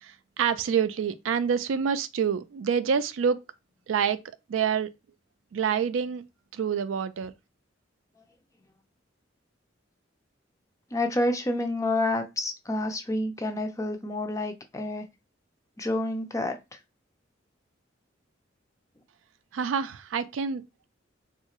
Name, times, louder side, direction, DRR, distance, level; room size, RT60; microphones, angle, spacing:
voice 1, 0.0-3.4 3.9-4.2 4.5-4.9 5.5-6.2 6.5-7.3 19.5-20.6, right 7 dB, 85° right, 0.4 m, -27 dB
voice 2, 10.9-15.1 15.8-16.8, left 1 dB, 15° left, 0.4 m, -29 dB
3.5 x 2.4 x 2.9 m
head